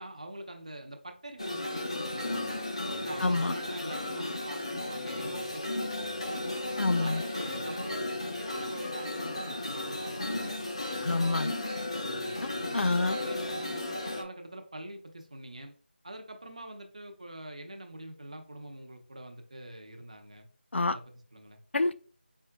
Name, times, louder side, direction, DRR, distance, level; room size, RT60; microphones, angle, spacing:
voice 1, 0.0-2.6 3.0-6.3 6.8-10.6 10.9-11.2 12.2-12.4 12.8-15.7 16.0-20.5 20.9-21.6, right 1 dB, 35° right, 0.7 m, -45 dB
sound 1, 1.4-14.2, left 1 dB, 30° left, 0.5 m, -34 dB
voice 2, 3.2-3.5 6.8-7.2 11.0-11.5 12.7-13.2 20.7-21.0 21.7-21.9, left 2 dB, 90° left, 0.4 m, -27 dB
4.5 x 4.1 x 2.2 m
figure-of-eight pair, 180°, 6 cm